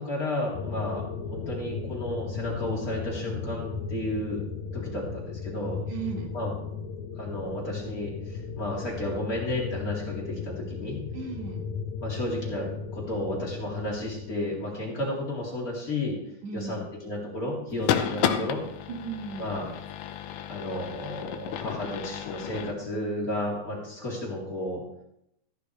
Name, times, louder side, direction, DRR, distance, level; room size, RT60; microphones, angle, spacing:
voice 1, 0.0-4.4 4.7-5.8 6.3-6.5 7.2-11.0 12.0-16.2 16.5-18.6 19.4-19.7 20.5-24.8, left 1 dB, 25° left, -4 dB, 3.9 m, -32 dB
sound 1, 0.5-14.3, left 5 dB, 75° left, 2.2 m, -36 dB
voice 2, 5.9-6.3 11.1-11.6 16.4-16.9 18.0-18.5 18.9-19.5, right 5 dB, 65° right, 1 dB, 3.0 m, -36 dB
sound 2, 17.7-22.7, left 9 dB, 90° left, 2.4 m, -32 dB
15.0 x 12.0 x 3.4 m, 0.78 s
omnidirectional pair, 3.5 m